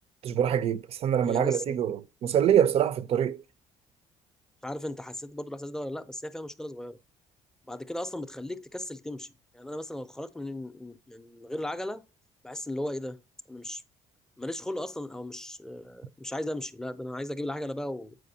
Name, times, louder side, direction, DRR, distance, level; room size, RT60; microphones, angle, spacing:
voice 1, 0.2-3.4, right 9 dB, 55° right, 0.5 m, -25 dB
voice 2, 1.2-1.9 4.6-7.0 7.7-9.3 9.5-12.0 12.4-13.2 13.5-13.8 14.4-18.2, left 1 dB, 5° left, 0.5 m, -36 dB
7.6 x 4.7 x 2.7 m
cardioid pair, 95°, 12 cm